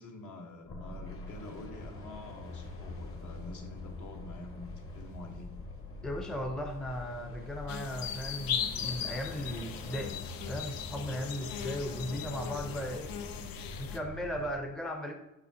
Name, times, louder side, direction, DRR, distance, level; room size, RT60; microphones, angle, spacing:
voice 1, 0.0-5.5, left 2 dB, 60° left, 3 dB, 1.2 m, -47 dB
sound 1, 0.6-14.5, left 2 dB, 40° left, 1.2 m, -44 dB
voice 2, 6.0-10.2 10.5-13.1 13.8-15.1, equal, ahead, 4 dB, 0.6 m, -37 dB
sound 2, 7.7-14.0, left 8 dB, 90° left, 0.6 m, -38 dB
6.9 x 5.6 x 2.8 m, 0.92 s
cardioid pair, 120°, 34 cm